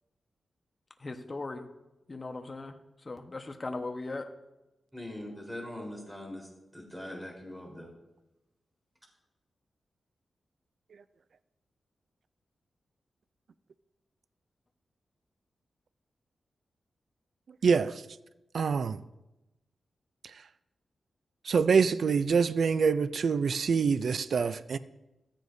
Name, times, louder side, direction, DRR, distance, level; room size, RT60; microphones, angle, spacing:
voice 1, 1.0-1.7 2.1-4.3, left 3 dB, 35° left, 1.1 m, -38 dB
voice 2, 4.9-7.9, left 1 dB, 5° right, 4.0 m, -42 dB
voice 3, 17.6-18.0 18.5-19.0 21.4-24.8, right 5 dB, 70° right, 0.4 m, -25 dB
16.0 x 14.5 x 2.7 m
wide cardioid pair, 90°, 0 cm